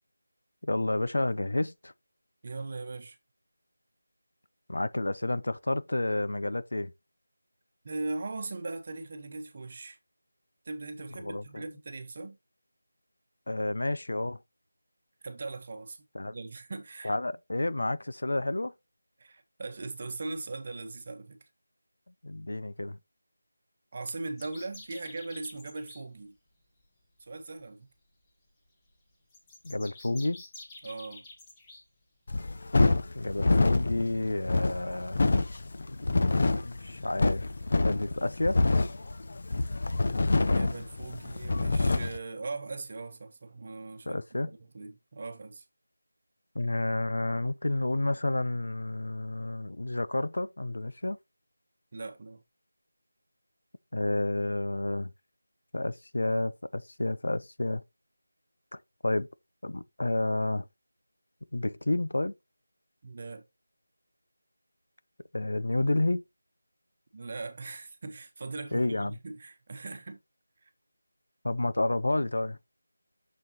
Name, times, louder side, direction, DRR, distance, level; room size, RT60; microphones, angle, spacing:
voice 1, 0.6-1.9 4.7-6.9 11.2-11.6 13.5-14.4 16.1-16.3 17.0-18.7 22.2-23.0 29.6-30.4 33.1-35.2 35.9-36.1 36.3-37.5 37.8-38.6 44.1-44.5 46.5-51.2 53.9-55.1 55.7-57.8 59.0-59.3 59.6-60.7 61.5-62.3 65.3-66.2 68.7-69.2 71.4-72.6, left 2 dB, 75° left, 0.6 m, -30 dB
voice 2, 2.4-3.2 7.8-10.0 10.6-12.4 15.2-17.2 19.2-21.4 23.9-26.3 27.2-27.9 30.8-31.3 40.5-45.6 51.9-52.4 63.0-63.4 67.1-70.2 70.6-70.7, right 3 dB, 30° right, 1.1 m, -39 dB
sound 1, 24.4-26.0 29.3-31.8, left 2 dB, 10° left, 1.2 m, -49 dB
sound 2, 32.3-42.2, left 3 dB, 40° left, 0.7 m, -26 dB
6.7 x 6.4 x 2.9 m
figure-of-eight pair, 175°, 0 cm